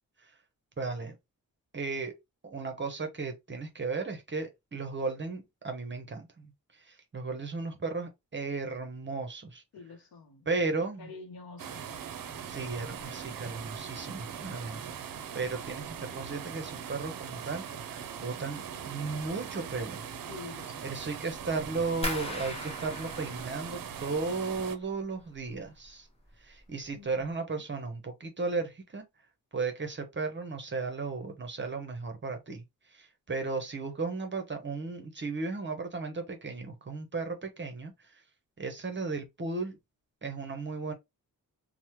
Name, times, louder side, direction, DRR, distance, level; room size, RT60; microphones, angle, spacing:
voice 1, 0.8-1.2 1.7-2.1 2.4-9.6 10.5-11.1 12.4-20.1 20.8-26.1 26.4-29.0 29.5-38.2 38.6-39.8 40.2-40.9, right 4 dB, 30° right, 0.8 m, -35 dB
voice 2, 9.7-10.5 11.0-11.8 20.3-20.9 26.9-27.2, left 4 dB, 85° left, 0.7 m, -47 dB
sound 1, 11.6-24.8, right 8 dB, 65° right, 0.5 m, -41 dB
sound 2, 22.0-24.9 25.2-25.9 26.2-26.7 27.1-27.2, left 1 dB, 15° left, 0.9 m, -39 dB
3.0 x 2.1 x 2.9 m
wide cardioid pair, 125°, 35 cm